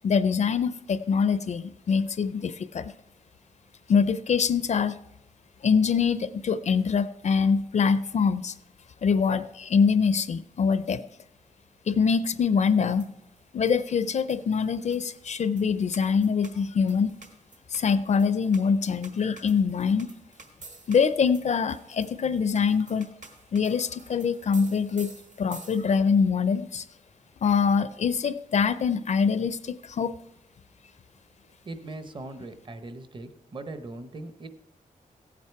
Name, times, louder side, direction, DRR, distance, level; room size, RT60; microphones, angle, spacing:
voice 1, 0.0-2.9 3.9-5.0 5.6-8.5 9.0-11.0 11.9-13.1 13.5-17.2 17.7-20.1 20.9-23.1 23.5-25.1 25.4-26.9 27.4-30.1, left 6 dB, 55° left, 13 dB, 0.4 m, -24 dB
sound 1, 12.7-26.2, right 3 dB, 60° right, 1.4 m, -51 dB
voice 2, 31.6-34.5, right 2 dB, 35° right, 9 dB, 0.8 m, -40 dB
15.5 x 8.5 x 4.6 m, 0.87 s
wide cardioid pair, 170°, 14 cm